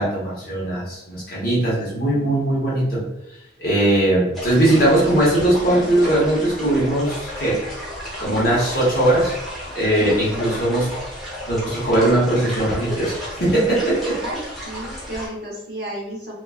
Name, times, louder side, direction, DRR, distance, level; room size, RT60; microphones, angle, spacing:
voice 1, 0.0-3.0 3.6-7.6 8.2-9.3 9.7-10.9 11.5-14.2, right 1 dB, 50° left, -7 dB, 0.9 m, -19 dB
sound 1, 4.3-15.3, equal, ahead, 0.7 m, -32 dB
voice 2, 10.0-10.6 14.2-16.3, equal, 55° right, -4 dB, 0.8 m, -33 dB
2.3 x 2.3 x 2.4 m, 0.84 s
head